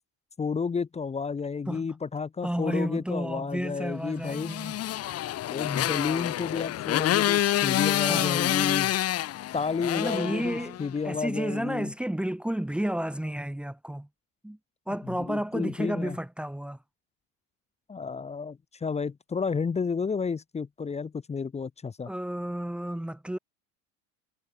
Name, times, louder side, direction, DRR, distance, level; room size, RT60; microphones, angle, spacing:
voice 1, 0.4-4.5 5.5-8.9 9.5-11.9 15.1-16.2 17.9-22.1, left 5 dB, 15° left, 2.1 m, -31 dB
voice 2, 2.4-4.7 8.0-8.4 9.9-10.8 11.0-14.1 14.4-14.6 14.9-16.8 22.1-23.4, right 1 dB, 5° right, 2.0 m, -31 dB
Motorcycle, 4.3-11.0, left 13 dB, 40° left, 2.6 m, -27 dB
supercardioid pair, 140°, 38 cm